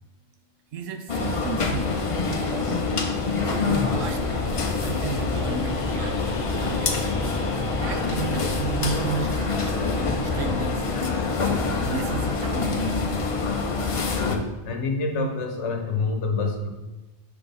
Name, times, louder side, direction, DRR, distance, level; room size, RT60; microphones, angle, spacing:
voice 1, 0.7-2.9 3.1-6.2 6.5-7.0 7.7-9.7 10.2-11.2 11.8-13.0, right 5 dB, 80° right, 6 dB, 1.0 m, -34 dB
sound 1, 1.1-14.4, left 4 dB, 50° left, 0.4 m, -25 dB
voice 2, 14.2-16.7, left 3 dB, 65° left, 3 dB, 1.1 m, -27 dB
6.9 x 3.4 x 4.0 m, 1.1 s
omnidirectional pair, 1.3 m